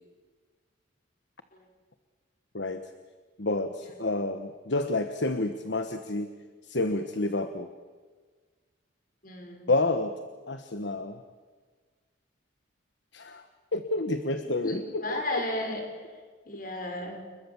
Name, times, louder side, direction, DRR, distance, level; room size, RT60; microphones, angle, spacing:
voice 1, 2.5-2.9 3.4-6.3 6.6-7.7 9.7-10.2 10.5-11.2 13.1-13.4 13.7-15.4, left 2 dB, 65° left, 8 dB, 1.3 m, -29 dB
voice 2, 9.2-9.7 14.6-15.8 16.5-17.2, left 1 dB, 45° left, 4 dB, 5.6 m, -34 dB
29.5 x 22.0 x 7.2 m, 1.5 s
head